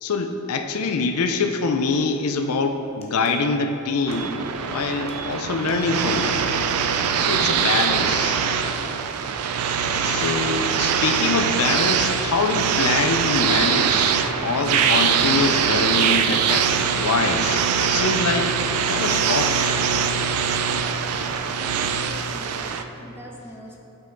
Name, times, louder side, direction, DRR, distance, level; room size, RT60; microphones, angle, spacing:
voice 1, 0.0-6.5 7.2-8.4 10.0-19.8, left 4 dB, 70° left, 6 dB, 0.5 m, -25 dB
sound 1, 2.4-2.5 2.8-3.7 4.1-4.3 4.6-4.7 5.0-5.3 5.6-6.3 6.7-6.8, right 4 dB, 30° left, 0.9 m, -41 dB
sound 2, 4.1-22.8, right 7 dB, 80° right, 0.4 m, -22 dB
voice 2, 21.5-23.8, equal, 10° right, -1 dB, 0.7 m, -42 dB
8.2 x 5.6 x 3.9 m, 3.0 s
head